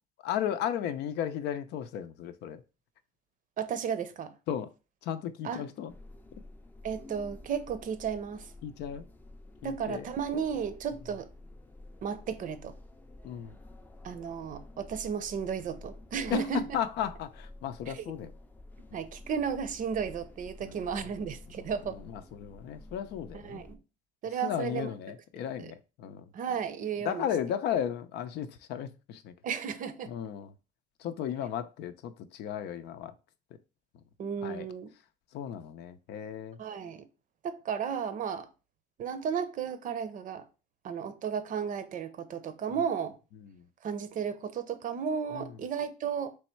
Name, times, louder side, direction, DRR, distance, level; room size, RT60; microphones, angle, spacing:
voice 1, 0.2-2.6 4.5-4.7 5.0-5.9 8.6-9.1 9.6-10.0 13.2-13.6 16.3-18.3 18.9-19.0 20.6-20.8 21.9-23.6 24.4-26.3 27.0-29.3 30.1-30.5 31.0-33.1 33.9-34.0 34.4-34.7 35.3-36.6 43.5-43.6 45.3-45.5, left 9 dB, 80° left, 0.6 m, -35 dB
voice 2, 3.6-4.4 5.4-5.6 6.8-8.5 9.6-11.3 12.0-12.8 14.0-16.7 17.9-18.1 18.9-22.0 23.3-23.8 24.2-24.9 25.6-25.7 26.3-27.3 29.4-30.1 34.2-34.9 36.6-37.1 37.4-38.5 39.0-40.5 40.8-43.2 43.8-46.3, right 7 dB, 50° right, 0.6 m, -34 dB
sound 1, 5.9-23.8, left 2 dB, 10° left, 0.4 m, -50 dB
3.5 x 3.2 x 4.4 m
cardioid pair, 110°, 17 cm